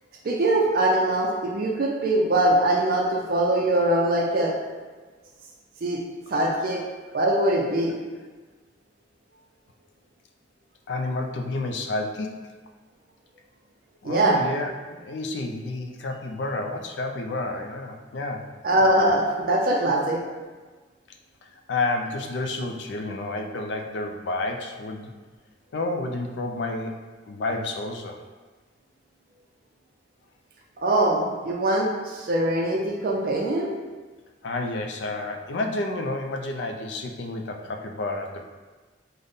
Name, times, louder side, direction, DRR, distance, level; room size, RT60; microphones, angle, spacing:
voice 1, 0.2-4.6 5.8-6.0 6.3-6.8 7.1-7.9 14.0-14.5 18.6-20.2 30.8-33.7, right 1 dB, 50° right, -1 dB, 0.4 m, -22 dB
voice 2, 10.9-12.5 14.0-18.5 21.7-25.1 25.7-28.2 34.4-38.5, left 2 dB, 65° left, 3 dB, 0.4 m, -30 dB
3.5 x 2.1 x 3.8 m, 1.3 s
head